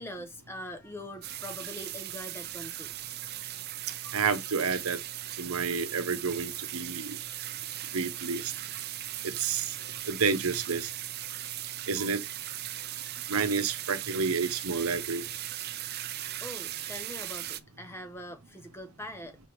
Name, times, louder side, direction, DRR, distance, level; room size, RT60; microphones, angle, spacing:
voice 1, 0.0-2.9 3.3-3.4 9.5-9.6 16.4-19.4, left 1 dB, 10° left, 0.9 m, -43 dB
sound 1, 1.2-17.6, right 13 dB, 45° right, 0.5 m, -38 dB
voice 2, 4.1-5.0 5.4-7.2 7.9-8.4 9.2-9.8 10.1-10.9 11.9-12.2 13.3-15.3, right 5 dB, 75° right, 0.9 m, -30 dB
6.0 x 3.4 x 4.6 m
head